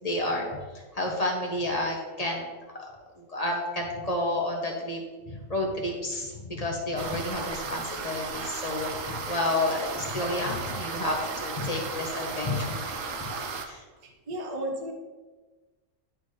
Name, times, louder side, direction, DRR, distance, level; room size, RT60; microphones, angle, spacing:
voice 1, 0.0-0.6 0.9-2.5 3.2-5.0 5.3-12.9 13.6-13.8, left 1 dB, 30° left, -1 dB, 1.1 m, -30 dB
sound 1, 7.0-13.7, right 4 dB, 75° right, 1.1 m, -35 dB
voice 2, 14.3-14.9, right 1 dB, 35° right, 2 dB, 0.8 m, -32 dB
11.0 x 4.1 x 3.2 m, 1.3 s
omnidirectional pair, 1.4 m